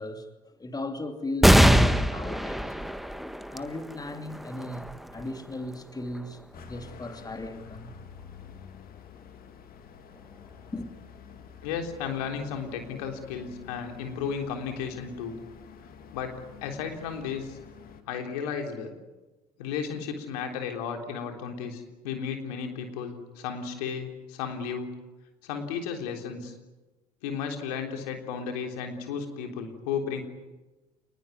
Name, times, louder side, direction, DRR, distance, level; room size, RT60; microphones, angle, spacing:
voice 1, 0.0-2.8 3.5-7.9 10.7-10.9, left 2 dB, 20° left, 2.8 m, -37 dB
sound 1, 1.4-8.3 8.9-9.0 10.1-10.7, equal, ahead, 1.4 m, -25 dB
sound 2, 6.5-18.0, left 7 dB, 50° left, 2.7 m, -48 dB
voice 2, 11.6-15.4 16.1-16.3 16.6-17.6 18.1-18.9 19.6-24.9 25.4-26.5 27.2-30.2, left 6 dB, 75° left, 3.7 m, -34 dB
28.0 x 20.5 x 9.6 m
hypercardioid pair, 60°, 20 cm